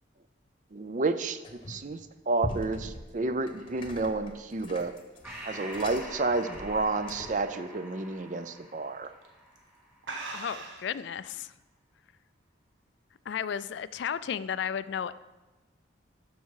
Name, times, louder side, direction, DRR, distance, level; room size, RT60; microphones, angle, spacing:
voice 1, 0.7-2.0 2.3-4.9 5.4-9.1, right 3 dB, 40° right, 11 dB, 0.5 m, -30 dB
sound 1, 1.4-2.0 2.4-7.5, left 1 dB, 25° left, 1.0 m, -42 dB
sound 2, 4.1-7.0 7.4-7.7 8.1-8.2 9.0-9.3 9.6-9.7 10.0-11.0, right 3 dB, 85° right, 1.3 m, -42 dB
Breathing, 5.2-10.1, right 1 dB, 10° right, 2.6 m, -45 dB
voice 2, 10.3-11.5 13.3-15.2, left 8 dB, 65° left, 16 dB, 0.3 m, -33 dB
13.0 x 5.5 x 4.8 m, 1.2 s
head